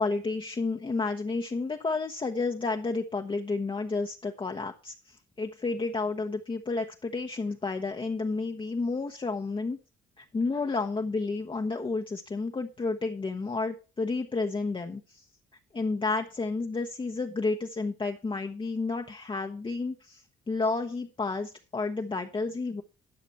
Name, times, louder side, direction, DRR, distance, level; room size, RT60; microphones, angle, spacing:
voice 1, 0.0-4.9 5.4-9.8 10.2-15.0 15.7-20.2 20.5-22.8, left 3 dB, 25° left, 2 dB, 1.0 m, -31 dB
11.5 x 5.9 x 5.5 m, 0.33 s
cardioid pair, 90°, 20 cm